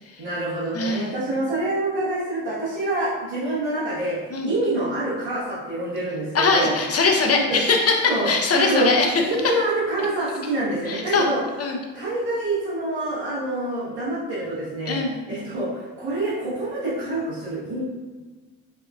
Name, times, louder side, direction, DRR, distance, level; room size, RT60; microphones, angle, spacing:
voice 1, 0.2-4.2 4.4-6.7 7.3-7.6 8.1-11.4 11.9-15.0 15.3-17.8, right 1 dB, 80° right, -11 dB, 1.4 m, -26 dB
voice 2, 0.7-1.2 4.3-4.5 6.3-9.1 10.9-11.3 11.6-11.8 14.9-15.2, left 4 dB, 40° left, 2 dB, 0.8 m, -21 dB
3.6 x 3.4 x 2.4 m, 1.3 s
hypercardioid pair, 55°, 37 cm